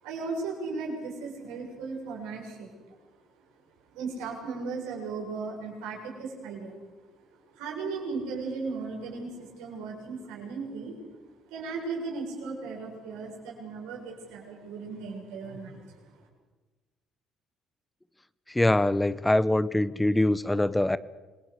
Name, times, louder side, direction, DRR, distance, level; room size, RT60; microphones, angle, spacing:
voice 1, 0.0-2.7 3.9-6.8 7.5-11.0 11.5-16.0, right 4 dB, 90° right, 0 dB, 7.0 m, -36 dB
voice 2, 18.5-21.0, left 1 dB, 10° left, 17 dB, 0.9 m, -23 dB
26.5 x 19.5 x 8.2 m, 1.2 s
supercardioid pair, 70°, 0 cm